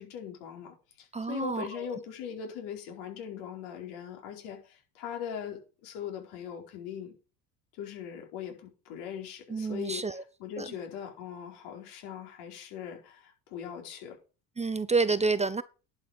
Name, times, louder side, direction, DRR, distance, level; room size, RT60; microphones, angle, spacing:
voice 1, 0.0-7.2 7.8-14.2, left 8 dB, 75° left, 4.7 m, -40 dB
voice 2, 1.1-1.7 9.5-10.2 10.6-10.7 14.6-15.6, right 4 dB, 15° right, 0.8 m, -28 dB
11.0 x 6.5 x 5.3 m
supercardioid pair, 80°, 40 cm